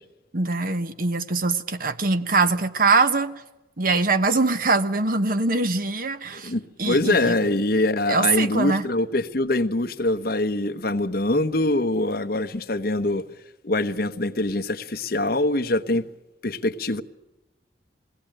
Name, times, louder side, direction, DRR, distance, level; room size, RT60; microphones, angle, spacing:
voice 1, 0.3-3.4 3.8-6.5 6.8-7.3 8.1-8.8, right 3 dB, 55° right, 1.2 m, -23 dB
voice 2, 6.3-13.2 13.6-16.1 16.4-17.0, left 2 dB, 60° left, 1.1 m, -24 dB
21.5 x 17.0 x 9.0 m
head